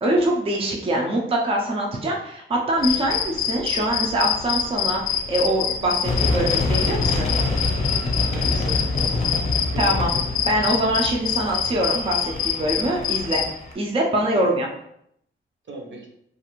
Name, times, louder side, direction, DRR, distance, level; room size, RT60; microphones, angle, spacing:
voice 1, 0.0-7.3 9.8-10.1 10.5-13.4 13.8-14.7, right 1 dB, 25° right, -1 dB, 0.4 m, -23 dB
sound 1, 2.8-13.5, left 8 dB, 75° left, 0.4 m, -26 dB
sound 2, 6.0-13.7, left 2 dB, 30° left, 0.6 m, -26 dB
voice 2, 8.3-10.0 14.3-14.5 15.7-16.1, right 2 dB, 65° right, 0 dB, 0.7 m, -38 dB
2.4 x 2.4 x 2.9 m, 0.74 s
wide cardioid pair, 115°, 21 cm